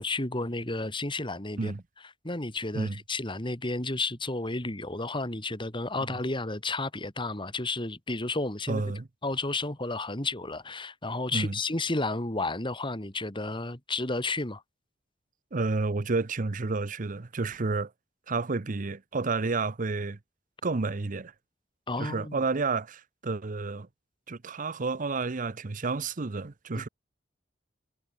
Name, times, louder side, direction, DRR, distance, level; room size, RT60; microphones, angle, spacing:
voice 1, 0.0-1.7 2.2-8.9 9.2-14.6 21.9-22.4 26.8-26.9, left 2 dB, 25° left, 3.5 m, -32 dB
voice 2, 8.7-9.1 11.3-11.6 15.5-17.9 18.3-20.2 20.6-21.3 22.0-23.9 24.3-26.9, right 3 dB, 45° right, 0.8 m, -30 dB
head